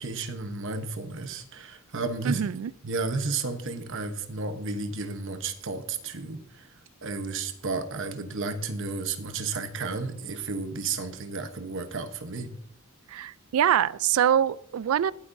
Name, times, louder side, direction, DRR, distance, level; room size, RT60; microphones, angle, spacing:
voice 1, 0.0-2.5 2.8-6.7 7.0-12.5, right 3 dB, 60° right, 9 dB, 1.0 m, -32 dB
voice 2, 2.2-2.7 13.1-15.1, right 9 dB, 80° right, 20 dB, 0.3 m, -24 dB
19.0 x 8.2 x 2.6 m, 0.71 s
head